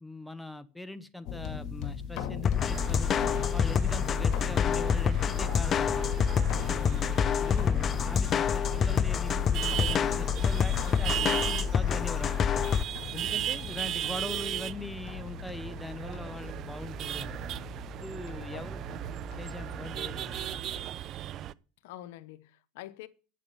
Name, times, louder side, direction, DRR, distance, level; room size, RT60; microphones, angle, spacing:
voice 1, 0.0-3.1 3.5-6.1 6.7-12.6 13.1-17.4 17.9-18.8 19.4-20.4, left 2 dB, 5° left, 1.0 m, -41 dB
sound 1, 1.2-20.8, left 7 dB, 55° left, 2.2 m, -40 dB
sound 2, 2.4-12.8, left 8 dB, 35° left, 0.5 m, -27 dB
sound 3, 2.7-21.5, right 12 dB, 45° right, 0.5 m, -37 dB
voice 2, 2.8-3.2 4.2-4.5 13.5-13.9 18.5-18.6 21.8-23.1, left 15 dB, 75° left, 0.9 m, -47 dB
8.7 x 8.3 x 7.0 m
supercardioid pair, 110°, 0 cm